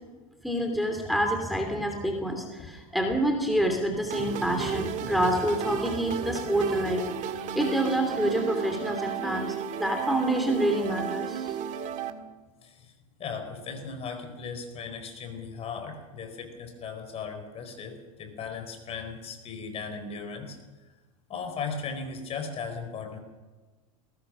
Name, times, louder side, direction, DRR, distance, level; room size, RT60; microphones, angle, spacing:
voice 1, 0.4-7.0 7.5-11.6, right 1 dB, ahead, 2 dB, 3.0 m, -27 dB
sound 1, 4.1-12.1, right 8 dB, 40° right, 1.9 m, -33 dB
voice 2, 12.6-12.9 13.2-20.6 21.3-23.2, left 5 dB, 35° left, 6 dB, 4.6 m, -37 dB
22.0 x 18.5 x 6.4 m, 1.3 s
supercardioid pair, 120°, 18 cm